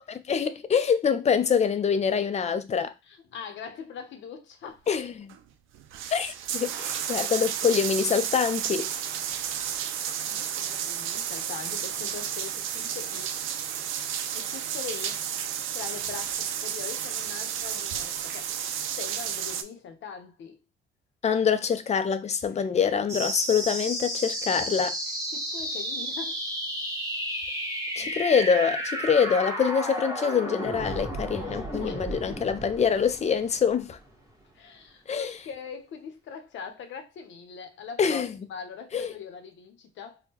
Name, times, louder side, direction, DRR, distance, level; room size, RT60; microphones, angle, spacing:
voice 1, 0.3-2.9 4.9-5.3 6.1-8.9 21.2-24.9 28.0-34.0 35.1-35.4 38.0-38.3 38.9-39.1, left 6 dB, 35° left, 0.4 m, -25 dB
voice 2, 3.0-4.9 9.6-13.3 13.6-13.7 14.3-15.3 15.7-18.5 19.0-20.6 25.3-26.4 31.3-32.4 34.5-38.2 38.5-40.2, left 7 dB, 70° left, 0.8 m, -42 dB
sound 1, 5.3-5.4 5.7-19.6, right 9 dB, 85° right, 0.4 m, -32 dB
sound 2, 23.1-34.1, right 1 dB, 15° right, 1.4 m, -33 dB
3.6 x 2.2 x 2.8 m
cardioid pair, 90°, 20 cm